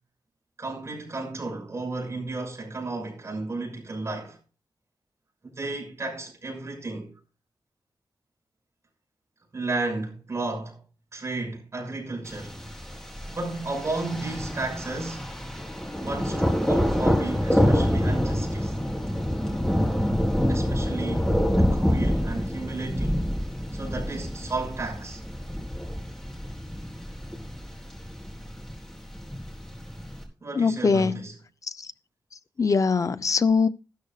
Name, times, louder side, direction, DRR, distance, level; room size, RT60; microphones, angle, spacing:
voice 1, 0.6-4.4 5.5-7.1 9.5-10.8 11.1-12.6 13.3-15.3 16.0-18.8 20.5-21.3 21.6-23.2 23.7-25.2 30.4-31.3, right 3 dB, 40° right, 6.2 m, -33 dB
Thunder, 12.3-30.2, equal, 5° left, 4.2 m, -27 dB
voice 2, 30.6-31.2 32.6-33.7, left 5 dB, 45° left, 0.6 m, -22 dB
15.5 x 13.0 x 2.4 m
wide cardioid pair, 160°, 8 cm